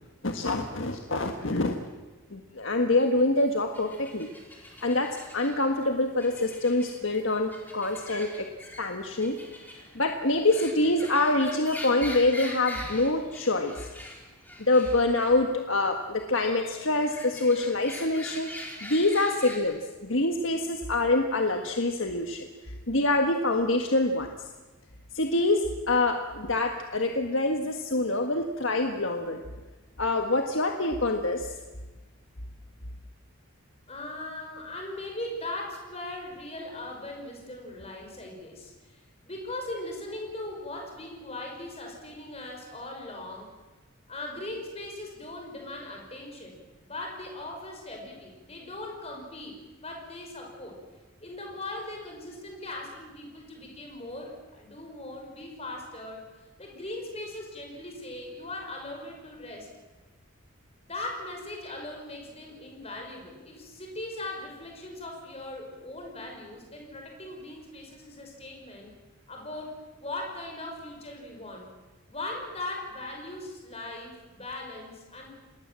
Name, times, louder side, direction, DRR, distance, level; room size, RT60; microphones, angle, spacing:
voice 1, 0.2-1.8 2.3-4.3 4.8-8.5 8.8-9.4 9.9-13.7 14.6-18.5 18.8-22.5 22.9-24.3 25.1-29.4 30.0-31.5, left 2 dB, 60° left, 4 dB, 1.6 m, -26 dB
sound 1, 3.1-19.6, left 1 dB, 10° left, 4.2 m, -44 dB
voice 2, 33.9-43.5 44.1-46.6 46.8-50.8 51.2-56.2 56.6-59.7 60.8-68.9 69.3-71.7 72.1-75.3, left 2 dB, 30° left, 1 dB, 5.4 m, -39 dB
27.5 x 20.0 x 7.6 m, 1.2 s
head